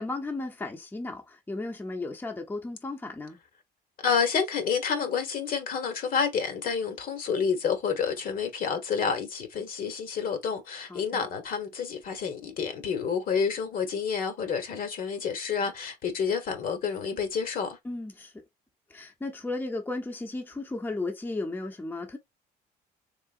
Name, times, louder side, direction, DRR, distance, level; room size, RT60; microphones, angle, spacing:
voice 1, 0.0-3.4 10.9-11.2 17.8-18.4 18.9-22.2, left 2 dB, 10° left, 0.7 m, -35 dB
voice 2, 4.0-17.8, left 6 dB, 55° left, 1.3 m, -29 dB
3.8 x 3.3 x 2.5 m
cardioid pair, 110°, 17 cm